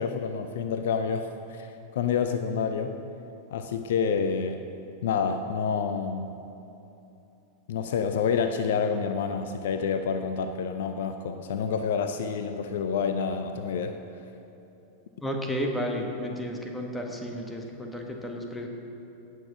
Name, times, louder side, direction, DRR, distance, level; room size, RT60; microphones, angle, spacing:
voice 1, 0.0-3.0 3.5-4.6 5.0-6.3 7.7-14.0, left 6 dB, 60° left, 8 dB, 0.6 m, -28 dB
voice 2, 15.2-18.7, equal, 10° left, 1 dB, 1.7 m, -32 dB
17.5 x 6.5 x 6.1 m, 2.9 s
figure-of-eight pair, 90°, 0 cm